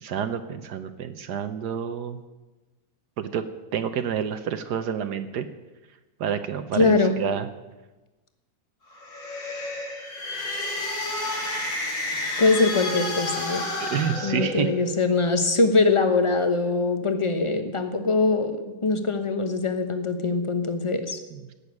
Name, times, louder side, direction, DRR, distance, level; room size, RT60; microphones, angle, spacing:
voice 1, 0.0-2.2 3.2-3.4 3.7-5.5 6.2-7.5 13.8-14.7 21.3-21.5, right 8 dB, 70° right, 9 dB, 1.3 m, -29 dB
voice 2, 6.7-7.1 12.4-13.6 14.2-21.2, left 3 dB, 20° left, 7 dB, 1.0 m, -22 dB
sound 1, 8.9-15.0, left 2 dB, 90° left, 3.3 m, -30 dB
17.0 x 6.8 x 9.5 m, 1.1 s
omnidirectional pair, 1.9 m